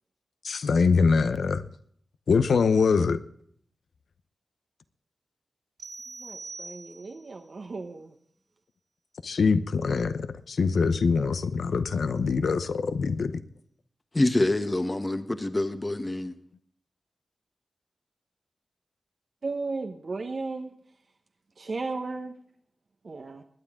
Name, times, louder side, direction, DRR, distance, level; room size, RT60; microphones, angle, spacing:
voice 1, 0.4-1.6 2.3-3.2 9.2-13.4, left 5 dB, 85° left, 0.8 m, -24 dB
sound 1, 5.8-7.3, right 3 dB, 75° right, 4.4 m, -42 dB
voice 2, 6.1-8.2 19.4-20.7 21.6-22.4 23.0-23.4, right 3 dB, 55° right, 1.0 m, -35 dB
voice 3, 14.1-16.3, left 2 dB, 25° left, 1.1 m, -26 dB
20.5 x 9.8 x 3.7 m
wide cardioid pair, 100°, 0 cm